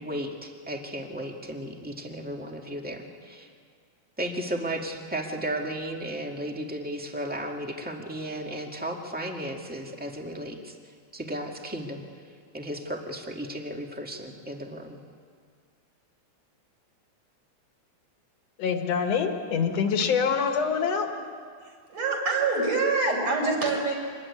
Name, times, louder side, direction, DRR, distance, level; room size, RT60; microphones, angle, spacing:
voice 1, 0.0-3.5 4.2-10.7 11.1-12.0 12.5-15.0, right 1 dB, 5° right, 2 dB, 1.2 m, -34 dB
voice 2, 18.6-21.1, left 6 dB, 60° left, 5 dB, 2.8 m, -25 dB
voice 3, 21.6-24.0, right 3 dB, 55° right, -1 dB, 6.0 m, -25 dB
25.5 x 20.5 x 9.8 m, 2.1 s
omnidirectional pair, 3.5 m